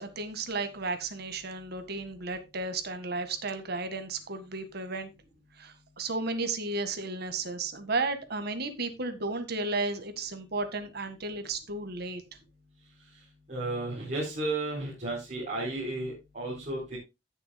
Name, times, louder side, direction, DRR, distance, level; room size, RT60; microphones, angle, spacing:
voice 1, 0.0-5.1 5.6-12.2, right 3 dB, 60° right, 1.7 m, -33 dB
voice 2, 13.5-17.0, right 2 dB, 40° right, 4.3 m, -33 dB
16.5 x 7.1 x 2.2 m
head